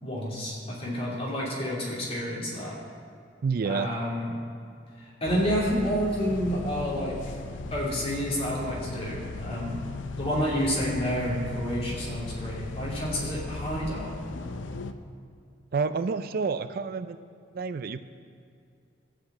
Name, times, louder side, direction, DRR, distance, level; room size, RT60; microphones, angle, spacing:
voice 1, 0.0-2.8 3.6-4.3 5.0-7.2 7.7-9.8 10.2-14.1, equal, 35° left, -5 dB, 2.9 m, -29 dB
voice 2, 3.4-3.9 15.7-17.2 17.5-18.0, right 5 dB, 55° right, 11 dB, 0.4 m, -28 dB
sound 1, 5.2-14.9, left 3 dB, 75° left, 0.6 m, -37 dB
13.0 x 5.1 x 8.3 m, 2.4 s
head